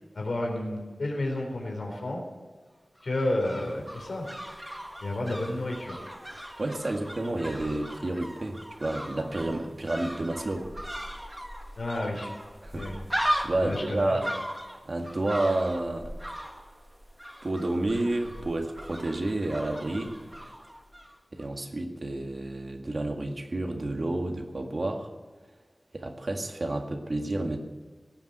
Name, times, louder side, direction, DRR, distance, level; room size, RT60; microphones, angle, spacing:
voice 1, 0.1-2.2 3.0-4.3 5.0-6.0 11.7-12.3 12.7-12.9 13.6-14.2, left 1 dB, 80° left, 0 dB, 4.1 m, -31 dB
sound 1, 3.0-21.1 21.4-21.5, equal, 10° right, 1.6 m, -38 dB
voice 2, 6.6-10.7 12.6-12.9 13.4-14.3 14.9-16.1 17.4-20.4 21.3-25.1 25.9-27.6, right 2 dB, 55° right, 3 dB, 1.9 m, -30 dB
18.0 x 7.3 x 8.2 m, 1.5 s
wide cardioid pair, 65°, 0 cm